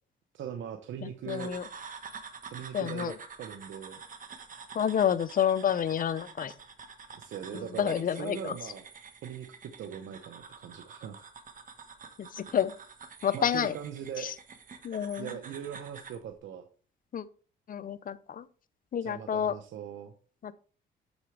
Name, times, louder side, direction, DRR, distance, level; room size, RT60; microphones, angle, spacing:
voice 1, 0.3-1.5 2.5-4.0 7.1-8.8 9.2-11.3 13.3-14.3 15.2-16.6 19.0-20.1, right 9 dB, 75° right, 6 dB, 0.9 m, -40 dB
voice 2, 1.0-1.6 2.7-3.1 4.7-6.5 7.8-8.5 12.3-12.7 13.2-13.8 14.2-14.3 14.8-15.3 17.1-17.2 17.7-18.4 18.9-19.5 20.4-20.5, left 9 dB, 45° left, 16 dB, 0.6 m, -29 dB
sound 1, 1.3-16.2, right 5 dB, 40° right, 1.3 m, -48 dB
8.1 x 6.8 x 3.3 m, 0.39 s
cardioid pair, 90°, 20 cm